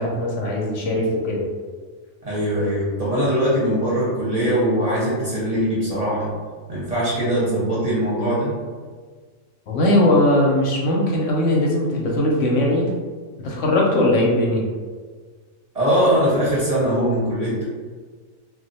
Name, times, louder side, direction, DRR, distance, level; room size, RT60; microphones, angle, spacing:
voice 1, 0.0-1.4 9.7-12.9 13.4-14.7, left 1 dB, 70° left, -2 dB, 0.9 m, -19 dB
voice 2, 2.2-6.3 6.7-8.5 15.7-17.6, equal, 35° right, -8 dB, 0.7 m, -21 dB
2.5 x 2.1 x 3.9 m, 1.5 s
omnidirectional pair, 1.4 m